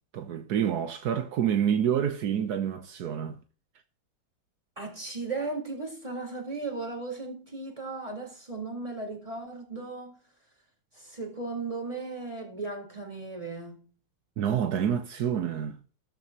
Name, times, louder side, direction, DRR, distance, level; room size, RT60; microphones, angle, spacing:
voice 1, 0.1-3.4 14.4-15.8, right 9 dB, 80° right, 1.4 m, -28 dB
voice 2, 4.8-10.2 10.9-13.9, right 3 dB, 20° right, 4.1 m, -36 dB
13.5 x 12.0 x 2.9 m
omnidirectional pair, 1.7 m